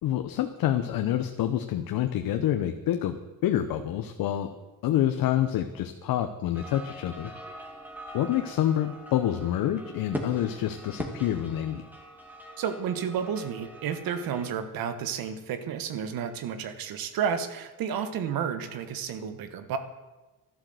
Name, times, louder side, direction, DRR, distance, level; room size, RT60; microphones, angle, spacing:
voice 1, 0.0-3.2 3.4-4.5 4.8-7.3 8.1-11.8, left 11 dB, 75° left, 7 dB, 1.0 m, -27 dB
sound 1, 6.5-14.5, equal, 5° right, 2.4 m, -41 dB
voice 2, 12.6-19.8, right 7 dB, 80° right, 10 dB, 1.5 m, -31 dB
12.0 x 12.0 x 7.8 m, 1.2 s
cardioid pair, 130°, 35 cm